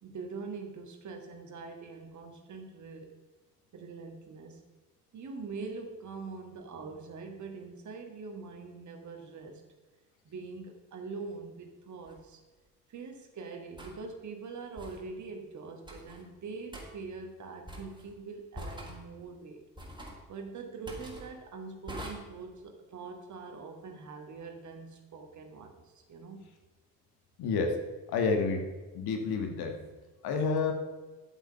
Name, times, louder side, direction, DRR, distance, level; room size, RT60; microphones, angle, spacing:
voice 1, 0.0-3.1 3.7-4.6 5.1-9.6 10.2-12.4 12.9-19.6 20.3-26.4, right 4 dB, 40° right, 3 dB, 1.7 m, -43 dB
sound 1, 12.1-12.2 13.8-14.0 14.8-15.0 15.9-16.2 16.7-16.9 17.7-18.1 18.5-19.0 19.8-20.2 20.9-21.3 21.9-22.1, equal, 10° right, 4.2 m, -43 dB
voice 2, 27.4-27.8 28.1-28.7 28.9-29.8 30.2-30.7, left 4 dB, 55° left, 4 dB, 1.6 m, -29 dB
10.5 x 7.9 x 5.6 m, 1.2 s
figure-of-eight pair, 50°, 45 cm